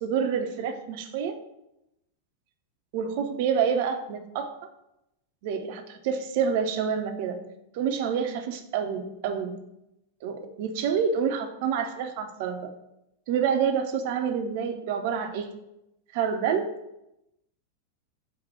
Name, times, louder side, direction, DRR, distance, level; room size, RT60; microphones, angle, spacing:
voice 1, 0.0-1.3 2.9-4.5 5.4-7.4 7.7-9.6 10.2-12.7 13.3-15.5 16.1-16.7, right 7 dB, 50° right, 6 dB, 0.4 m, -28 dB
4.3 x 2.1 x 4.3 m, 0.85 s
figure-of-eight pair, 90°, 0 cm